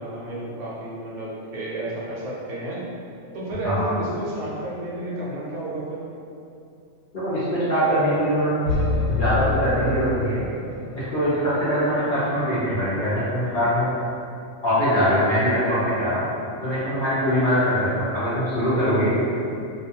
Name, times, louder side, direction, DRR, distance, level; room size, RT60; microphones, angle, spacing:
voice 1, 0.0-2.9 3.3-6.0 11.9-12.1, right 1 dB, 65° right, -6 dB, 0.9 m, -31 dB
voice 2, 7.1-8.5 9.1-10.4 11.1-13.9 14.6-16.3 16.6-19.2, equal, 50° left, -12 dB, 0.7 m, -22 dB
sound 1, 8.7-10.8, left 3 dB, 85° left, 1.0 m, -26 dB
2.5 x 2.3 x 2.7 m, 2.6 s
omnidirectional pair, 1.4 m